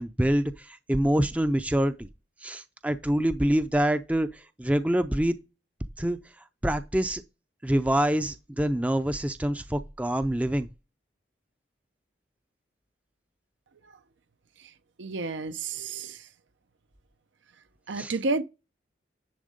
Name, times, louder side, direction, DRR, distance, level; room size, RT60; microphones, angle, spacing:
voice 1, 0.0-2.1 2.4-5.4 6.0-6.2 6.6-7.2 7.6-10.7 17.9-18.2, right 1 dB, 5° right, 0.4 m, -26 dB
voice 2, 15.0-16.2 17.9-18.4, right 3 dB, 85° right, 0.6 m, -30 dB
10.5 x 3.5 x 5.0 m
head